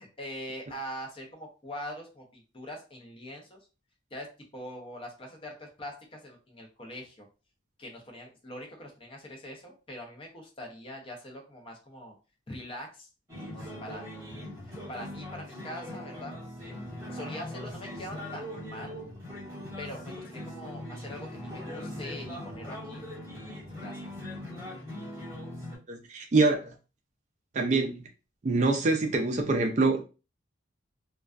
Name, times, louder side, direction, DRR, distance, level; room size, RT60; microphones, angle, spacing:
voice 1, 0.0-3.6 4.1-7.2 7.8-12.1 12.5-13.1 13.5-14.5 14.9-16.3 16.6-16.8 17.1-19.0 19.8-23.0 23.5-24.1, left 1 dB, 25° left, 0.6 m, -43 dB
sound 1, 13.3-25.8, left 1 dB, 15° right, 1.1 m, -40 dB
voice 2, 25.9-26.7 27.5-28.0 28.4-30.0, right 3 dB, 35° right, 0.3 m, -25 dB
2.3 x 2.2 x 2.4 m
head